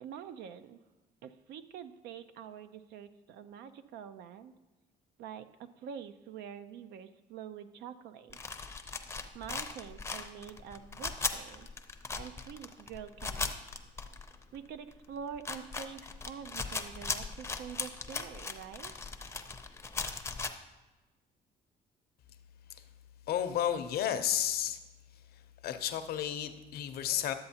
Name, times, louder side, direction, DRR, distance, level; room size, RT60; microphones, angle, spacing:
voice 1, 0.0-0.8 1.2-4.5 5.2-8.4 9.3-11.7 12.2-13.6 14.5-16.0 16.3-18.9, right 8 dB, 80° right, 11 dB, 0.5 m, -46 dB
sound 1, 8.3-14.6 14.9-15.0 15.3-20.5, left 4 dB, 15° left, 0.5 m, -38 dB
voice 2, 23.3-24.8 25.6-27.3, left 10 dB, 65° left, 9 dB, 0.6 m, -32 dB
11.0 x 7.8 x 2.8 m, 1.1 s
cardioid pair, 110°, 17 cm